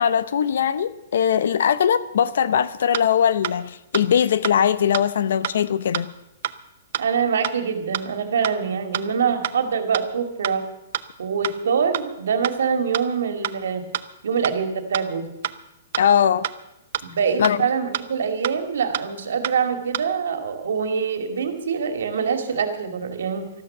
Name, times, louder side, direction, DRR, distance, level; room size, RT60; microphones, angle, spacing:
voice 1, 0.0-6.1 16.0-16.5 17.4-17.6, left 8 dB, 70° left, 0.8 m, -20 dB
sound 1, 2.9-3.0 3.4-3.5 3.9-4.0 4.4-4.5 4.9-5.0 5.4-5.5 5.9-6.0 6.4-6.5 6.9-7.0 7.4-7.5 7.9-8.0 8.4-8.5 8.9-9.0 9.4-9.5 9.9-10.0 10.4-10.5 10.9-11.0 11.4-11.5 11.9-12.0 12.4-12.5 12.9-13.0 13.4-13.5 13.9-14.0 14.4-14.5 14.9-15.0 15.4-15.5 15.9-16.0 16.4-16.5 16.9-17.0 17.4-17.5 17.9-18.0 18.4-18.5 18.9-19.0 19.4-19.5 19.9-20.0, right 12 dB, 50° right, 0.7 m, -27 dB
voice 2, 7.0-10.7 11.2-13.8 14.2-15.3 17.0-23.5, right 6 dB, 85° right, 2.4 m, -24 dB
13.5 x 12.5 x 6.8 m
hypercardioid pair, 170°, 0 cm